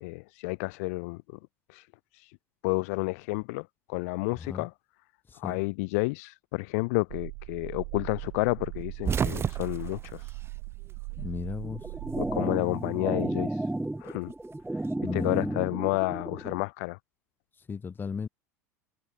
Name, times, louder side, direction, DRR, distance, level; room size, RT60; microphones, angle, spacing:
voice 1, 0.0-1.2 1.7-1.8 2.1-2.3 2.6-4.7 5.4-10.2 12.2-13.6 14.0-14.3 15.1-17.0, left 28 dB, 65° left, 0.5 m, -30 dB
voice 2, 4.3-4.7 5.3-5.6 11.2-11.8 15.0-15.6 17.7-18.3, left 5 dB, 25° left, 2.2 m, -35 dB
sound 1, 7.1-12.4, right 40 dB or more, 65° right, 4.3 m, -40 dB
sound 2, 8.7-11.3 11.6-12.6 13.8-15.3, right 7 dB, 30° right, 2.2 m, -33 dB
sound 3, 11.6-16.6, right 2 dB, 5° right, 2.0 m, -33 dB
hypercardioid pair, 90°, 8 cm